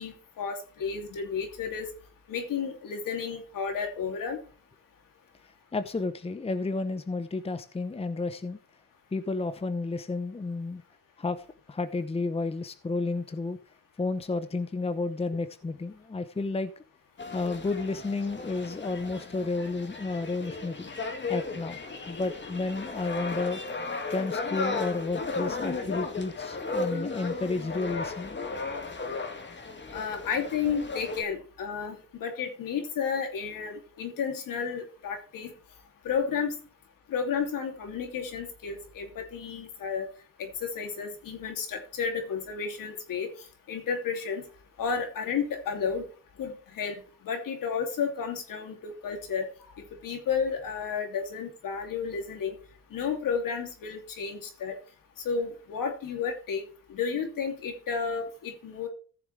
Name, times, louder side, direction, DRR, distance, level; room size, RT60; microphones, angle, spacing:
voice 1, 0.0-1.9 2.3-4.4 29.9-35.5 36.0-36.6 37.1-40.1 40.4-43.3 43.7-44.4 44.8-46.0 46.4-46.9 47.2-49.5 50.0-52.6 52.9-54.8 55.2-56.6 56.9-58.9, left 6 dB, 70° left, 4 dB, 2.8 m, -32 dB
voice 2, 5.7-8.6 9.1-10.8 11.2-11.4 11.7-13.6 14.0-16.7 17.3-20.9 21.3-21.8 22.1-23.6 24.1-28.4, left 3 dB, 20° left, 12 dB, 0.8 m, -31 dB
sound 1, 17.2-31.2, left 3 dB, 35° left, 2.2 m, -35 dB
15.0 x 7.0 x 3.3 m, 0.38 s
cardioid pair, 90°, 34 cm